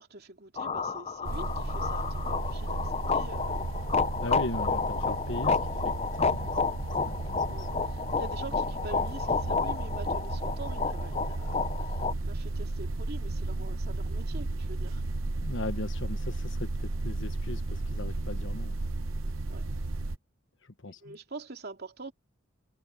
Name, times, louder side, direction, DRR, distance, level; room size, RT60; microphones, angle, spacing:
voice 1, 0.0-3.7 7.5-15.0 19.5-19.7 20.9-22.1, right 2 dB, 50° right, 3.1 m, -45 dB
sound 1, 0.6-12.1, left 5 dB, 30° left, 0.7 m, -31 dB
sound 2, 1.3-20.2, right 2 dB, 75° right, 0.9 m, -34 dB
voice 2, 4.1-5.6 5.8-7.7 15.4-18.7 20.8-21.2, left 2 dB, 60° left, 1.3 m, -38 dB
head